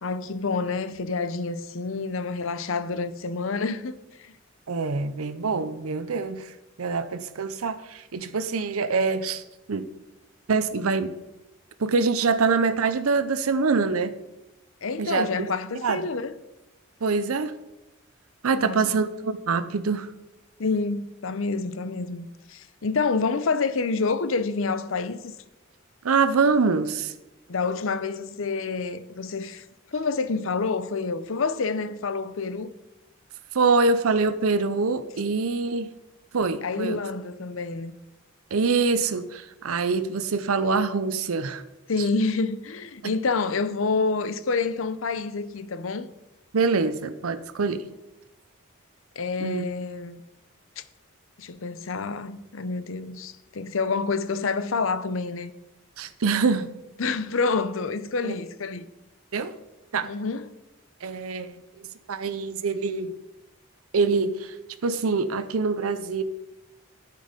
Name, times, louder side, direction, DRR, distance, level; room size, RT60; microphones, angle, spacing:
voice 1, 0.0-4.3 14.8-16.4 18.5-19.0 20.6-25.3 27.5-29.6 29.9-32.7 36.6-37.9 41.9-46.1 49.2-50.2 50.8-50.9 51.4-55.5 57.0-58.9 60.0-60.5, left 4 dB, 70° left, 0.7 m, -28 dB
voice 2, 4.7-6.5 6.8-9.4 9.7-9.9 10.5-11.1 11.8-14.1 15.0-15.3 15.8-16.1 17.0-17.5 18.4-20.1 26.0-27.1 33.5-35.9 36.3-37.0 38.5-41.6 43.0-43.1 46.5-47.9 49.4-49.6 56.0-56.7 58.2-58.4 59.3-59.5 59.9-60.1 61.0-63.1 63.9-64.5 64.8-66.2, right 4 dB, 90° right, 0.6 m, -25 dB
10.0 x 8.4 x 5.1 m
head